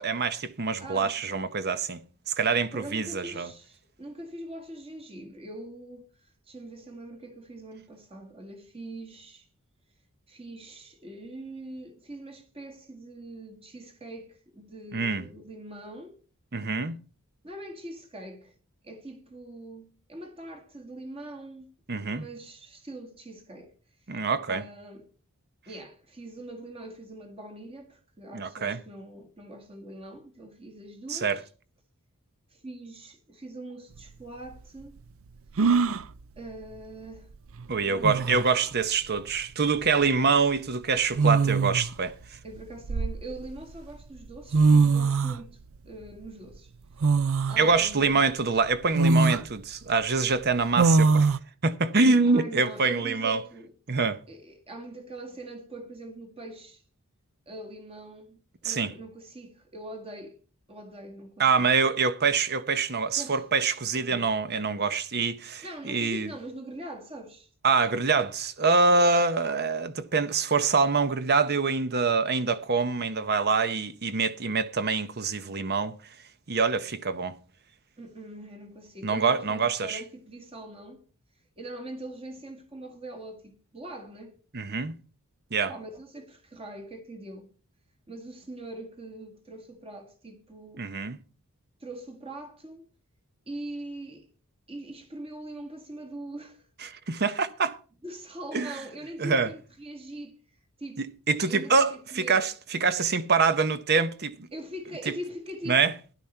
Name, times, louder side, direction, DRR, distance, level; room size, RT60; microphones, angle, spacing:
voice 1, 0.0-2.0 2.3-3.5 14.9-15.2 16.5-17.0 21.9-22.3 24.1-24.6 28.3-28.8 31.1-31.4 37.7-42.1 47.6-51.3 51.6-53.4 53.9-54.2 58.6-58.9 61.4-66.3 67.6-75.9 76.5-77.3 79.0-80.0 84.5-84.9 85.5-85.7 90.8-91.2 96.8-97.8 98.5-98.7 99.2-99.5 101.0-104.5 105.1-105.2 105.7-105.9, right 4 dB, 45° right, 0.9 m, -25 dB
voice 2, 0.8-1.2 2.7-9.5 10.3-16.2 17.4-18.6 18.8-21.7 22.1-23.7 24.5-25.1 25.7-31.4 32.5-35.0 36.4-37.3 37.8-38.4 42.4-45.6 45.8-46.7 47.5-48.2 52.3-53.7 54.3-56.8 57.5-60.4 60.7-61.7 63.2-63.5 63.9-64.3 65.6-67.5 78.0-81.0 81.6-84.4 85.7-87.5 88.1-90.9 91.8-92.9 93.5-94.3 94.7-96.7 97.1-97.4 98.0-100.4 100.8-101.0 101.5-102.5 104.5-105.8, right 1 dB, 25° right, 2.0 m, -42 dB
sound 1, 34.0-34.1 35.6-36.1 37.6-37.7 38.0-38.5 39.8-40.1 41.1-41.9 42.6-43.6 44.3-44.4 44.5-45.4 47.0-47.6 48.1-48.2 48.9-49.4 50.8-51.4, right 4 dB, 65° right, 0.5 m, -22 dB
12.5 x 11.0 x 4.4 m
head